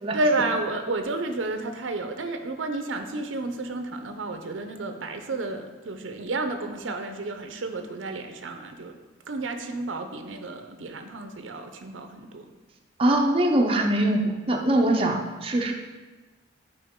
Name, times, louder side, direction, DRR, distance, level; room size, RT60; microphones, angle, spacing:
voice 1, 0.1-9.0 9.3-12.5, right 2 dB, 90° right, 6 dB, 0.6 m, -31 dB
voice 2, 13.0-15.7, right 1 dB, 30° right, 1 dB, 0.6 m, -22 dB
8.6 x 4.5 x 3.7 m, 1.2 s
head